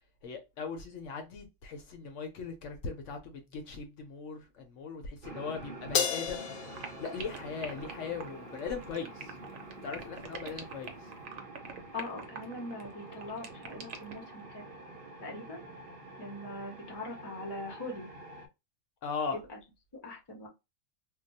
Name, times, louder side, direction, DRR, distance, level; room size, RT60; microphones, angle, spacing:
voice 1, 0.2-6.5 7.0-9.3 9.8-10.9 19.0-19.4, left 5 dB, 70° left, 0.9 m, -39 dB
sound 1, 5.2-18.5, right 2 dB, 50° right, 0.8 m, -47 dB
Crash cymbal, 5.9-8.5, left 7 dB, 90° left, 1.1 m, -34 dB
sound 2, 6.7-14.3, right 6 dB, 75° right, 1.0 m, -44 dB
voice 2, 11.9-14.7 15.2-15.6 16.2-18.1 19.3-19.6 20.0-20.5, left 2 dB, 25° left, 0.6 m, -41 dB
2.3 x 2.3 x 3.9 m
omnidirectional pair, 1.4 m